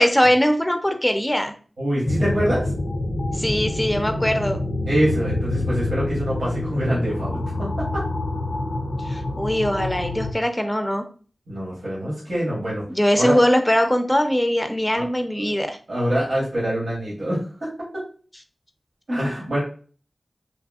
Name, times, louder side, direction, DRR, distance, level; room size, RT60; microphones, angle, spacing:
voice 1, 0.0-1.5 3.3-4.6 9.1-11.1 12.9-15.8, equal, 15° left, 6 dB, 0.5 m, -21 dB
voice 2, 1.8-2.6 4.9-8.0 11.5-12.8 13.1-13.4 14.9-15.0 15.4-15.5 15.9-17.7 19.1-19.6, equal, 75° right, -6 dB, 1.1 m, -25 dB
sound 1, 2.0-10.3, left 2 dB, 80° left, 0.4 m, -27 dB
3.0 x 2.5 x 2.3 m, 0.40 s
wide cardioid pair, 50°, 0 cm